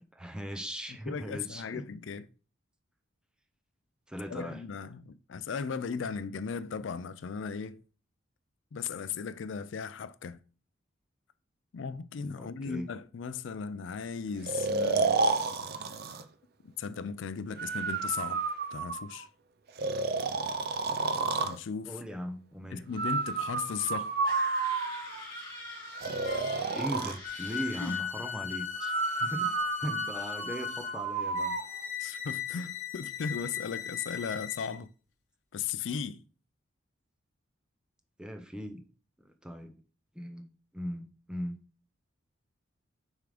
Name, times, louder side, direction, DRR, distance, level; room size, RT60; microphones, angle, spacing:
voice 1, 0.1-1.8 4.1-4.6 12.4-12.9 21.8-22.8 26.5-28.9 29.2-29.5 29.8-31.6 38.2-38.8 39.2-39.8 40.1-40.5 40.7-41.6, equal, 5° right, 0.6 m, -39 dB
voice 2, 0.9-2.3 4.3-7.8 8.7-10.4 11.7-15.1 16.8-18.4 18.7-19.3 21.4-21.9 22.7-24.2 27.8-27.9 32.0-34.9 35.5-36.2, left 6 dB, 65° left, 0.4 m, -37 dB
Breathing, 14.5-16.2 17.6-19.2 19.8-21.6 23.0-25.2 26.0-27.2 28.8-31.7, right 4 dB, 50° right, 0.4 m, -31 dB
sound 1, 24.2-28.1, left 1 dB, 20° left, 2.4 m, -44 dB
sound 2, 26.2-26.7 27.2-34.8, left 9 dB, 40° left, 1.1 m, -38 dB
6.7 x 3.6 x 5.0 m
head